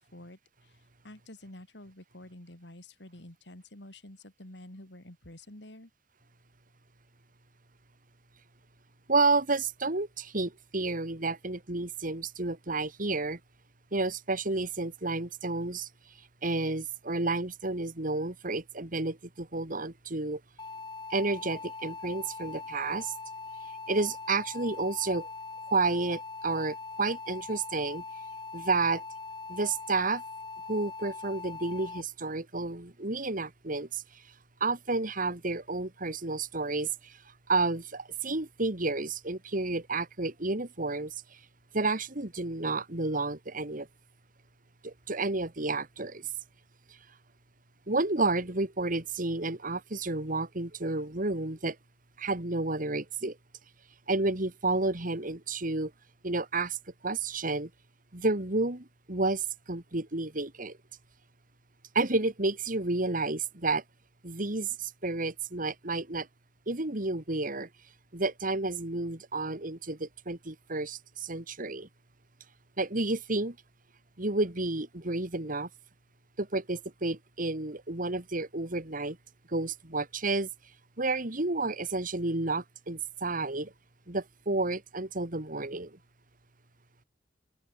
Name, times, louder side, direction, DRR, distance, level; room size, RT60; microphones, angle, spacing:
voice 1, 0.0-5.9, left 1 dB, 70° left, 4.2 m, -49 dB
voice 2, 9.1-13.4 13.9-15.9 16.4-20.4 21.1-23.1 23.9-25.3 25.7-28.0 28.5-29.0 29.5-30.2 30.6-34.0 34.6-37.1 37.5-41.1 41.7-43.9 44.8-46.3 47.9-51.8 52.2-53.4 54.1-55.9 56.2-56.8 57.0-57.7 58.1-60.8 61.9-63.8 64.2-66.3 66.7-67.7 68.1-71.9 72.8-73.6 74.2-75.7 76.4-79.2 79.5-80.5 81.0-83.7 84.1-86.0, right 3 dB, 50° right, 2.6 m, -31 dB
sound 1, 20.6-32.0, left 4 dB, 25° left, 7.2 m, -42 dB
open air
head